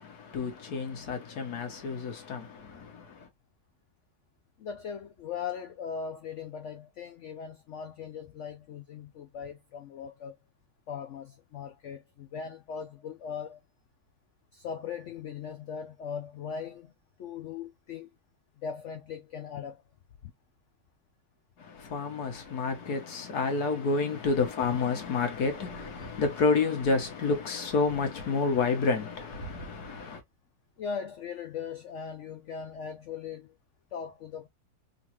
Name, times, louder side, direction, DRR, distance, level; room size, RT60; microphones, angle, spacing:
voice 1, 0.0-3.3 21.6-30.2, left 4 dB, 65° left, 1.5 m, -29 dB
voice 2, 4.6-10.4 10.9-13.6 14.5-16.9 17.2-18.1 18.6-19.8 20.2-20.3 24.7-24.8 30.8-33.6 33.9-34.5, left 6 dB, 90° left, 0.6 m, -39 dB
3.8 x 2.6 x 2.8 m
omnidirectional pair, 1.8 m